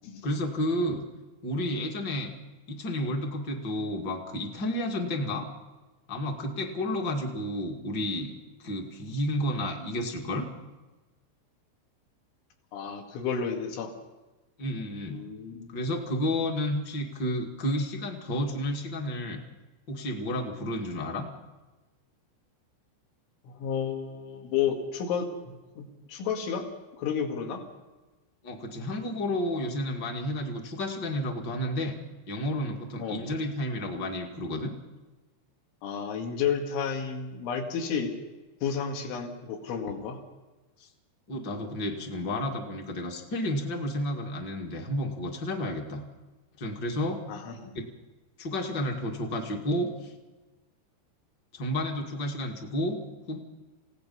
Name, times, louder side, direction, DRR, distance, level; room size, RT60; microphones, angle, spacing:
voice 1, 0.2-1.0 1.4-2.3 2.7-5.5 6.1-8.3 8.6-10.5 14.6-15.2 15.7-19.4 19.9-21.2 28.4-31.9 32.3-34.7 40.8-40.9 41.3-46.0 46.6-47.2 48.4-50.1 51.5-53.0 53.3-53.4, left 1 dB, 40° left, 2 dB, 1.5 m, -31 dB
voice 2, 12.7-13.9 15.1-15.8 23.4-26.7 27.0-27.6 33.0-33.2 35.8-38.1 38.6-40.2 47.3-47.7, left 7 dB, 80° left, 2 dB, 4.6 m, -31 dB
29.0 x 17.0 x 5.5 m, 1.2 s
omnidirectional pair, 5.4 m